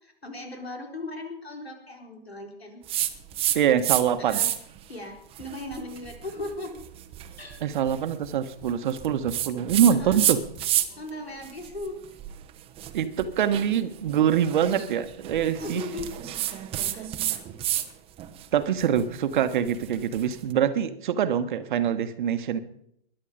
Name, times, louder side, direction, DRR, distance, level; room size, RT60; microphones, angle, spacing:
voice 1, 0.0-2.8 4.2-4.5 4.9-6.8 7.4-7.6 10.0-10.2 11.0-12.0 15.4-16.1 16.8-17.1, left 2 dB, 80° left, 3 dB, 4.3 m, -37 dB
sound 1, 2.9-4.0 4.3-4.8 5.3-11.1 11.4-17.9 18.2-20.4, right 12 dB, 20° right, 1.0 m, -30 dB
voice 2, 3.5-4.4 7.6-10.4 12.9-15.8 18.5-22.6, right 9 dB, 50° right, 10 dB, 1.3 m, -24 dB
21.0 x 11.0 x 5.2 m, 0.72 s
figure-of-eight pair, 120°, 31 cm